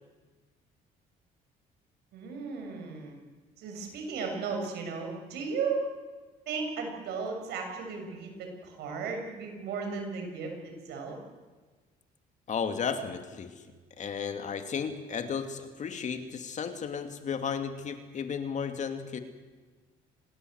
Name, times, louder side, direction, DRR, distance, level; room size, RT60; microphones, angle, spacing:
voice 1, 2.1-3.2 3.6-5.8 6.5-11.2, right 5 dB, 75° right, 3 dB, 7.2 m, -35 dB
voice 2, 12.5-13.5 14.0-19.2, left 6 dB, 45° left, 7 dB, 2.5 m, -34 dB
25.5 x 20.5 x 8.1 m, 1.4 s
cardioid pair, 110°, 17 cm